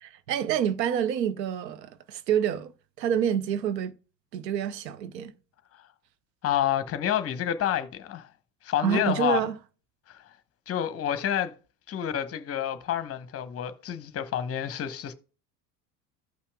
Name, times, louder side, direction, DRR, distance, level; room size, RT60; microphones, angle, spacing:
voice 1, 0.0-2.7 3.0-3.9 4.3-5.3 8.8-9.5, right 9 dB, 75° right, 0.8 m, -27 dB
voice 2, 6.4-8.3 8.6-9.4 10.1-10.2 10.7-11.5 11.9-15.1, left 10 dB, 30° left, 0.9 m, -28 dB
15.0 x 5.6 x 2.3 m
hypercardioid pair, 75°, 49 cm